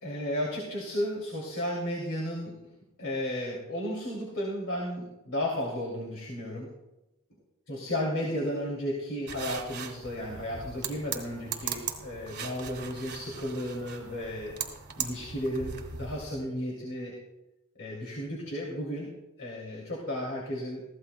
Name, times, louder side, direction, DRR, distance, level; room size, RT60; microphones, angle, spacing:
voice 1, 0.0-2.6 3.0-6.7 7.7-14.5 15.0-17.1 17.8-19.1 19.4-20.8, equal, 70° left, -3 dB, 2.7 m, -33 dB
sound 1, 9.3-16.4, right 7 dB, 50° right, 1.9 m, -39 dB
21.5 x 15.5 x 2.2 m, 1.0 s
head